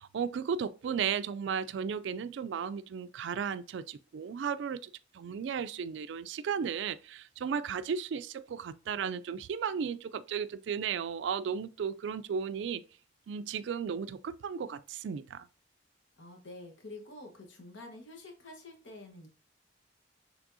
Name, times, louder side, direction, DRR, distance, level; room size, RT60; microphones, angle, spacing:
voice 1, 0.0-12.8 13.3-15.5, right 7 dB, 65° right, 0.3 m, -35 dB
voice 2, 16.2-19.3, left 2 dB, 75° left, 1.1 m, -48 dB
6.0 x 3.4 x 2.6 m
head